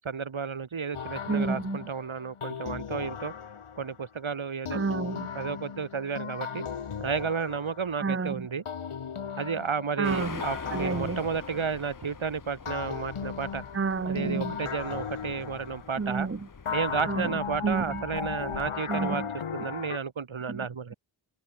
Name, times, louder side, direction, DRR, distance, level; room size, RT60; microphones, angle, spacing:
voice 1, 0.0-3.3 3.8-4.8 5.3-6.7 7.0-8.6 9.4-13.6 14.0-16.3 16.7-19.2 19.5-20.9, right 6 dB, 70° right, 1.9 m, -32 dB
sound 1, 0.9-4.0 4.7-8.2 8.7-12.2 12.7-16.1 16.7-20.0, left 7 dB, 90° left, 1.5 m, -37 dB
voice 2, 1.3-1.8 4.7-5.3 8.0-8.3 10.0-10.4 10.7-11.2 13.7-14.5 16.0-16.4 17.1-17.3 17.6-18.0 18.9-19.3 20.5-20.6, right 4 dB, 25° right, 0.9 m, -29 dB
sound 2, 10.0-18.7, left 5 dB, 40° left, 1.2 m, -44 dB
cardioid pair, 40°, 49 cm